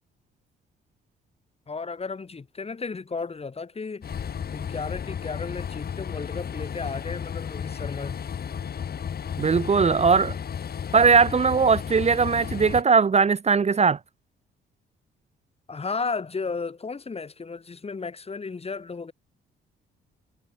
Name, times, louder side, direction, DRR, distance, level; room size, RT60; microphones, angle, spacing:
voice 1, 1.7-4.1 4.5-8.2 15.7-19.1, left 4 dB, 30° left, 5.0 m, -34 dB
Train, 4.0-12.8, left 8 dB, 50° left, 4.1 m, -33 dB
voice 2, 9.4-10.4 10.9-14.0, right 5 dB, 35° right, 1.2 m, -19 dB
cardioid pair, 90°, 20 cm